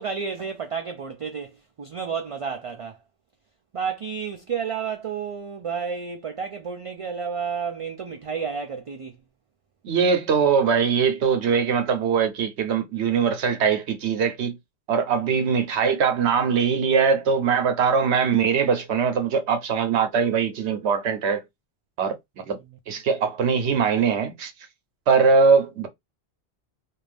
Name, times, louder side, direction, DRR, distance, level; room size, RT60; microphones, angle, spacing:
voice 1, 0.0-3.0 3.7-9.2, right 6 dB, 55° right, 0.3 m, -31 dB
voice 2, 9.8-14.6 14.9-21.4 22.0-22.6 22.9-24.5 25.1-25.9, right 6 dB, 85° right, 1.0 m, -21 dB
2.5 x 2.5 x 3.3 m
omnidirectional pair, 1.1 m